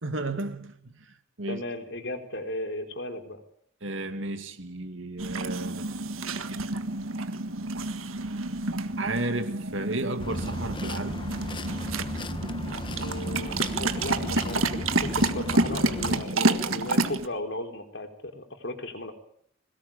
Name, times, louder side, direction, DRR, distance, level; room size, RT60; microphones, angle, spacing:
voice 1, 0.0-1.6 3.8-5.9 9.0-11.2, right 2 dB, 70° right, 2.4 m, -33 dB
voice 2, 1.5-3.4 13.0-19.1, left 1 dB, 55° left, 3.9 m, -36 dB
dog drinking Water, 5.2-17.3, right 2 dB, 85° right, 1.7 m, -29 dB
sound 1, 10.2-16.2, left 1 dB, 25° left, 1.2 m, -36 dB
22.0 x 19.0 x 8.8 m
head